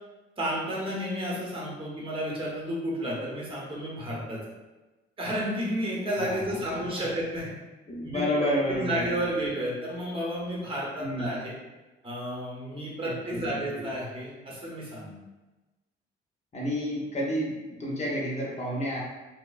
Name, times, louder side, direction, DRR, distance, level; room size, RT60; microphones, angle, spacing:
voice 1, 0.4-4.4 5.2-7.5 8.0-11.5 12.0-15.1, equal, 25° right, -4 dB, 0.8 m, -32 dB
voice 2, 6.2-6.6 7.9-9.2 11.0-11.4 13.0-13.8 16.5-19.0, equal, 35° left, -3 dB, 0.7 m, -30 dB
2.9 x 2.0 x 2.3 m, 1.1 s
cardioid pair, 90°, 20 cm